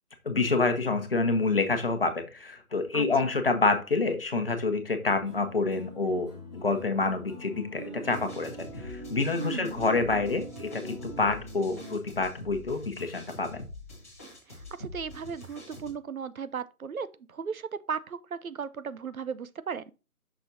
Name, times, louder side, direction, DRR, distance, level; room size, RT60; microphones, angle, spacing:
voice 1, 0.2-13.6, left 3 dB, 40° left, 1.1 m, -27 dB
sound 1, 5.2-12.0, right 1 dB, 20° right, 0.9 m, -43 dB
sound 2, 8.1-15.9, left 1 dB, 10° left, 1.0 m, -45 dB
voice 2, 9.4-9.8 14.5-19.8, right 6 dB, 70° right, 0.7 m, -36 dB
6.4 x 6.1 x 2.6 m
figure-of-eight pair, 165°, 44 cm